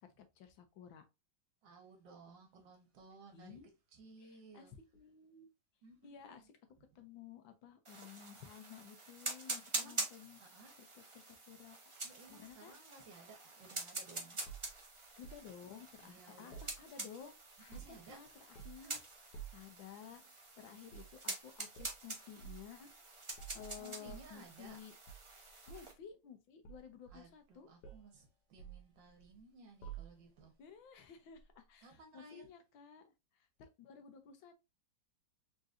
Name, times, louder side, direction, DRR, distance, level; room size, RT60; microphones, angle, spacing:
voice 1, 0.0-1.0 3.3-3.7 4.2-5.5 6.0-6.5 6.9-11.8 12.3-12.7 15.2-19.0 19.3-22.9 23.5-24.9 25.7-27.7 30.6-34.5, left 8 dB, 85° left, 1.6 m, -54 dB
voice 2, 1.6-3.6 3.9-4.8 5.8-6.5 9.7-10.1 10.4-10.8 12.0-14.5 16.0-16.7 17.7-18.2 18.8-19.0 23.8-24.8 27.1-30.6 31.8-32.5, right 3 dB, 75° right, 1.8 m, -58 dB
sound 1, 7.8-25.9, right 2 dB, 40° right, 0.4 m, -46 dB
sound 2, 14.5-15.5 16.5-17.3 17.5-18.1 18.5-18.9 19.3-19.7 20.9-21.2 21.7-22.0 22.4-22.7 23.3-24.8 25.1-26.0 26.6-27.5 27.8-28.1 28.6-29.4 29.8-30.4 31.4-31.5, right 8 dB, 70° left, 1.4 m, -52 dB
4.1 x 3.8 x 2.5 m
omnidirectional pair, 2.0 m